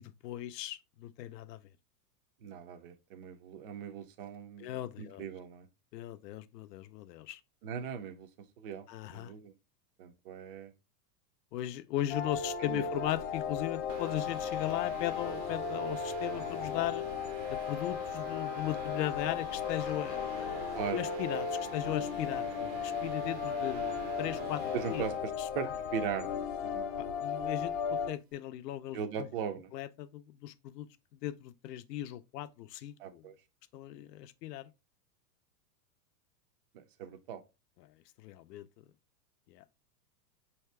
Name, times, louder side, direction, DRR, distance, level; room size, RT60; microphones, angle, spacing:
voice 1, 0.0-1.6 4.6-5.2 5.9-7.4 8.9-9.3 11.5-17.0 17.5-20.6 20.9-25.1 25.4-25.5 27.0-29.3 29.7-33.3 33.7-34.7 37.8-38.7 39.5-39.6, left 13 dB, 75° left, 0.6 m, -38 dB
voice 2, 2.4-5.7 7.6-8.3 8.6-8.9 9.1-9.5 10.0-10.7 12.6-12.8 20.7-21.0 24.7-26.9 28.9-29.7 33.0-33.3 36.7-37.4, right 8 dB, 40° right, 0.4 m, -39 dB
sound 1, 12.1-28.1, left 6 dB, 45° left, 0.8 m, -36 dB
sound 2, 13.9-25.3, right 7 dB, 85° right, 0.8 m, -47 dB
Laughter / Crowd, 19.3-22.2, left 2 dB, 15° left, 0.6 m, -52 dB
5.7 x 2.8 x 3.2 m
supercardioid pair, 160°, 49 cm